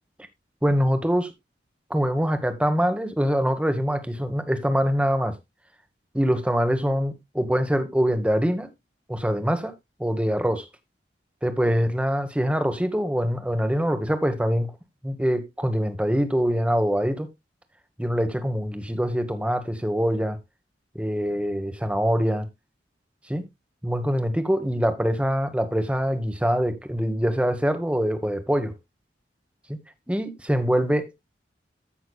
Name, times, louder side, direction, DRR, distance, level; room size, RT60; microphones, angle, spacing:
voice 1, 0.6-1.3 1.9-5.3 6.1-8.7 9.1-9.7 10.0-10.6 11.4-14.7 15.0-17.3 18.0-20.4 20.9-22.5 23.3-23.5 23.8-28.7 29.7-29.8 30.1-31.3, equal, 5° right, 1.2 m, -24 dB
14.5 x 6.3 x 2.3 m
head